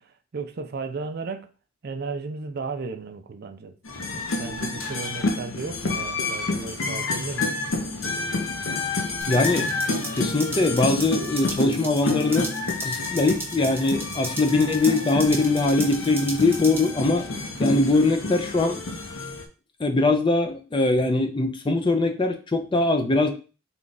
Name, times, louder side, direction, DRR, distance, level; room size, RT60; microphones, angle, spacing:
voice 1, 0.0-1.5 1.8-3.7 4.1-7.6, right 4 dB, 50° right, 0.4 m, -35 dB
sound 1, 3.8-19.4, left 3 dB, 75° left, 0.7 m, -29 dB
sound 2, 9.2-16.9, right 2 dB, 10° right, 0.8 m, -36 dB
voice 2, 9.3-12.5 12.8-17.3 17.6-18.8 19.8-23.3, left 2 dB, 25° left, 0.4 m, -22 dB
3.6 x 2.3 x 3.9 m
head